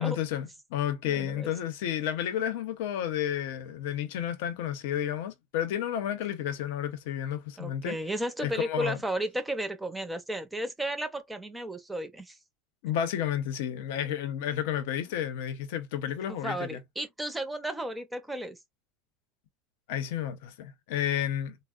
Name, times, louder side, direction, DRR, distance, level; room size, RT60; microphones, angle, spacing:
voice 1, 0.0-8.0 8.4-9.0 12.8-16.8 19.9-21.6, left 10 dB, 75° left, 0.6 m, -31 dB
voice 2, 1.0-1.5 7.6-12.4 16.3-18.6, right 1 dB, 5° right, 0.5 m, -34 dB
3.4 x 2.0 x 2.3 m
supercardioid pair, 135°, 0 cm